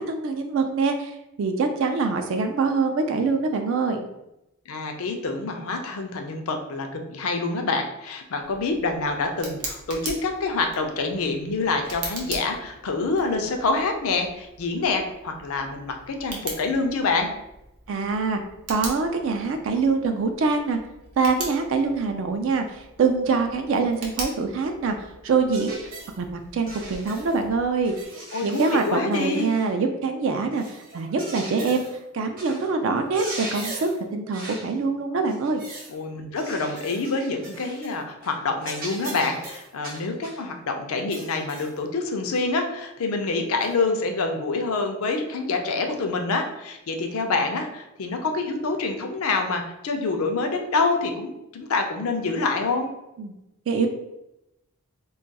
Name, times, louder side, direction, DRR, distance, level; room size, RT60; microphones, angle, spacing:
voice 1, 0.0-4.1 17.9-18.4 18.7-20.8 21.2-25.8 26.2-27.9 28.4-31.9 32.1-35.6 53.2-53.3 53.7-53.9, right 4 dB, 60° right, 5 dB, 0.3 m, -24 dB
voice 2, 4.7-17.3 28.3-29.5 35.9-52.9, left 3 dB, 75° left, 4 dB, 0.5 m, -26 dB
Tick, 8.4-28.1, right 2 dB, 90° right, 0.8 m, -41 dB
sound 1, 25.5-26.2 26.7-27.4 27.8-29.7 30.5-32.0 32.4-32.7 33.0-34.0 34.3-34.7 35.3-36.0 36.4-38.0 38.2-38.4 38.6-40.4 41.1-41.8 42.3-42.5 43.6-43.7, right 1 dB, 40° right, 0.8 m, -39 dB
2.3 x 2.2 x 3.9 m, 0.88 s
head